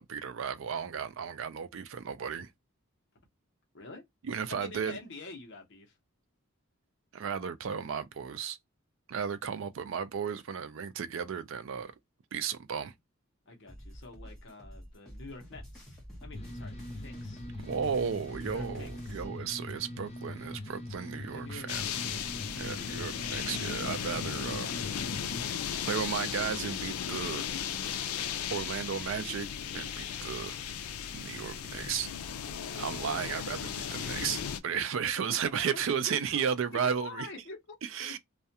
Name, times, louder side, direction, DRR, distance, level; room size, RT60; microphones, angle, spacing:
voice 1, 0.0-2.5 4.2-5.0 7.1-8.6 9.1-11.9 12.3-12.9 17.6-21.8 22.5-24.8 25.9-27.5 28.5-29.5 29.7-30.6 31.1-32.1 32.7-37.3 37.8-38.2, right 7 dB, 60° right, 0.4 m, -34 dB
voice 2, 4.5-6.0 13.5-17.5 18.4-19.3 21.3-23.4 35.3-35.4 35.7-35.8 36.1-38.1, left 3 dB, 55° left, 0.8 m, -47 dB
sound 1, 13.7-19.3, equal, 5° left, 0.9 m, -47 dB
sound 2, 16.3-25.4, left 1 dB, 30° left, 0.4 m, -42 dB
sound 3, 21.7-34.6, left 8 dB, 90° left, 0.4 m, -36 dB
2.4 x 2.2 x 2.7 m
head